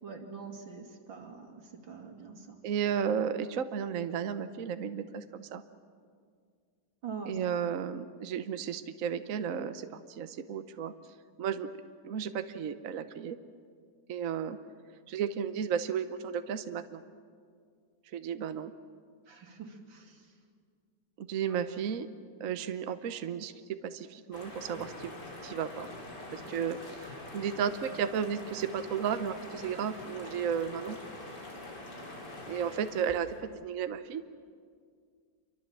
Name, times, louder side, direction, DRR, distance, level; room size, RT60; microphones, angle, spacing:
voice 1, 0.0-2.6 7.0-7.4 19.3-20.3 21.5-21.6, right 5 dB, 80° right, 2 dB, 3.3 m, -44 dB
voice 2, 2.6-5.6 7.3-10.9 11.4-11.7 12.0-13.4 14.1-14.6 15.1-17.0 18.1-18.7 21.2-22.1 22.4-25.2 25.4-25.9 26.3-31.0 32.5-34.2, right 8 dB, 55° right, 10 dB, 1.1 m, -33 dB
sound 1, 24.3-33.4, left 2 dB, 60° left, 4.1 m, -45 dB
28.0 x 24.0 x 7.4 m, 2.1 s
omnidirectional pair, 2.1 m